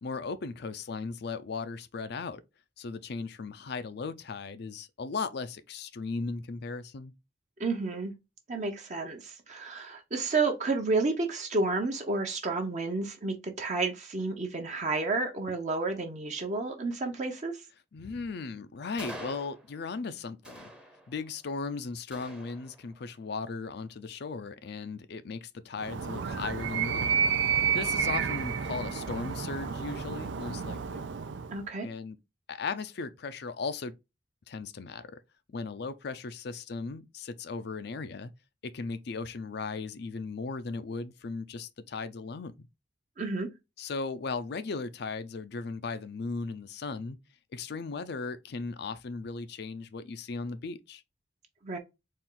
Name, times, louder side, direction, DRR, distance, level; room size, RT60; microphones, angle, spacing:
voice 1, 0.0-2.4 2.8-7.1 17.9-20.7 21.1-27.3 27.7-31.0 31.8-32.2 32.5-33.9 34.5-35.2 35.5-38.3 38.6-42.7 43.8-47.2 47.5-51.0, left 4 dB, 60° left, 0.5 m, -37 dB
voice 2, 7.6-8.1 8.5-17.6 31.5-31.9 43.2-43.5 51.6-51.8, right 3 dB, 40° right, 0.8 m, -31 dB
sound 1, 19.0-20.0 20.4-21.4 22.1-23.1, right 1 dB, 5° right, 0.7 m, -46 dB
Animal, 25.8-31.6, right 7 dB, 80° right, 0.5 m, -30 dB
4.3 x 2.4 x 3.7 m
head